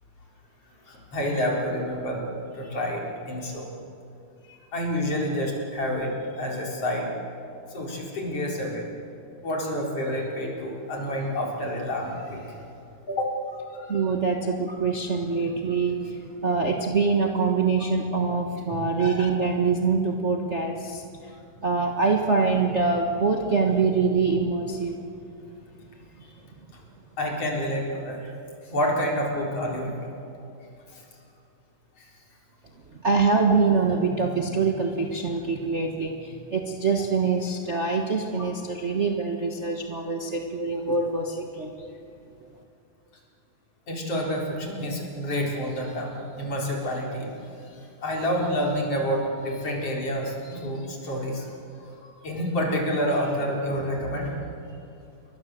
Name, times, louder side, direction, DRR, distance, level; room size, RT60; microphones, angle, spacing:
voice 1, 0.9-2.2 2.6-3.0 3.3-3.7 4.5-7.1 7.7-8.9 9.4-12.6 13.1-13.3 13.7-14.0 14.4-14.8 18.6-18.7 27.2-28.3 28.7-30.1 30.9-31.0 32.0-32.1 43.9-47.3 48.0-51.5 52.0-54.3, equal, 45° left, -1 dB, 5.2 m, -28 dB
voice 2, 13.9-16.0 16.4-21.0 21.6-24.9 33.0-41.7, right 4 dB, 75° right, 1 dB, 0.6 m, -24 dB
28.5 x 22.5 x 7.8 m, 2.6 s
omnidirectional pair, 3.8 m